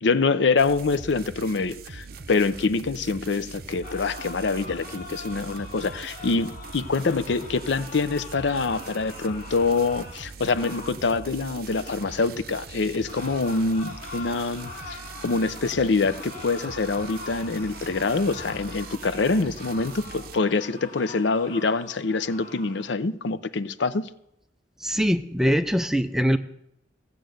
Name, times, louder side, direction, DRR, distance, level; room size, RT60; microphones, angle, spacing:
voice 1, 0.0-24.1, left 4 dB, 70° left, 14 dB, 0.6 m, -25 dB
sound 1, 0.6-20.4, right 4 dB, 50° right, 0.7 m, -42 dB
sound 2, 3.8-12.3 13.0-23.0, left 3 dB, 45° left, 1.7 m, -43 dB
voice 2, 24.8-26.4, equal, 5° right, 9 dB, 0.5 m, -22 dB
15.5 x 6.9 x 7.8 m, 0.82 s
head